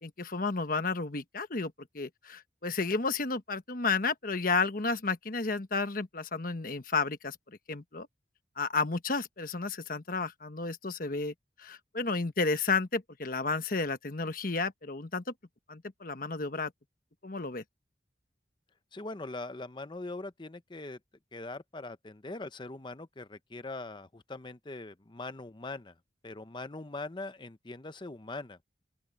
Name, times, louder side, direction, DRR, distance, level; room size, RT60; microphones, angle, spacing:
voice 1, 0.0-7.4 7.7-8.1 8.6-15.2 15.7-16.7 17.2-17.6, left 4 dB, 50° left, 1.2 m, -32 dB
voice 2, 18.9-21.0 21.3-25.9 26.2-28.8, left 2 dB, 25° left, 0.7 m, -41 dB
open air
head